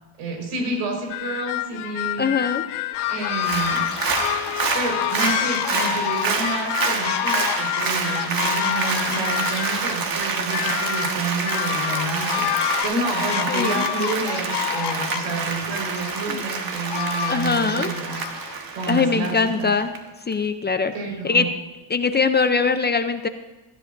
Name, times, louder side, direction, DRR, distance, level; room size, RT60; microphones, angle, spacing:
voice 1, 0.2-2.3 3.1-3.9 4.7-18.2 18.7-19.7 20.9-21.5, right 3 dB, 90° right, 1 dB, 4.8 m, -29 dB
sound 1, 1.1-5.8 6.4-10.0 10.5-12.8, left 17 dB, 80° left, 0.8 m, -30 dB
voice 2, 2.2-2.7 13.5-13.9 16.3-16.4 17.3-17.9 18.9-19.9 20.3-20.9 21.2-21.5 21.9-23.3, left 5 dB, 20° left, 9 dB, 0.5 m, -22 dB
sound 2, 2.9-18.5, left 10 dB, 55° left, 0.9 m, -29 dB
Applause, 3.3-20.0 20.3-20.4, right 5 dB, 45° right, 1.6 m, -28 dB
18.5 x 13.0 x 2.6 m, 1.2 s
cardioid pair, 130°, 50 cm